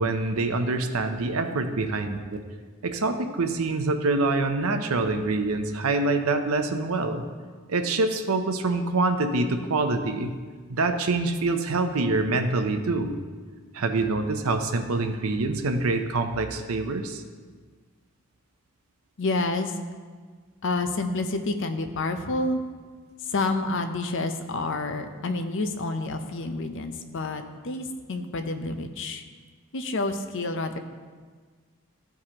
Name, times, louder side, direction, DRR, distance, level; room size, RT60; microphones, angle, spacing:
voice 1, 0.0-2.2 2.8-7.2 7.7-10.3 10.7-13.1 13.7-17.2, right 3 dB, 80° right, 7 dB, 0.6 m, -25 dB
voice 2, 19.2-19.7 20.6-22.6 23.3-29.2 29.7-30.8, left 2 dB, 60° left, 7 dB, 0.6 m, -29 dB
14.0 x 4.7 x 2.9 m, 1.5 s
head